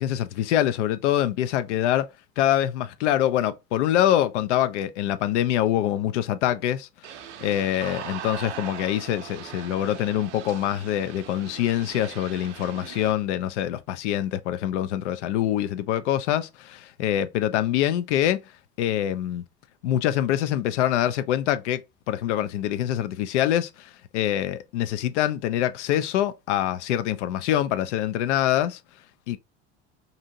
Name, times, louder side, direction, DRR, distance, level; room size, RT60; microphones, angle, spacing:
voice 1, 0.0-2.1 2.4-6.9 7.4-18.4 18.8-19.4 19.8-21.8 22.1-28.8 29.3-29.4, left 11 dB, 80° left, 0.5 m, -25 dB
sound 1, 7.0-13.1, right 10 dB, 75° right, 0.6 m, -40 dB
2.8 x 2.6 x 2.6 m
hypercardioid pair, 75°, 35 cm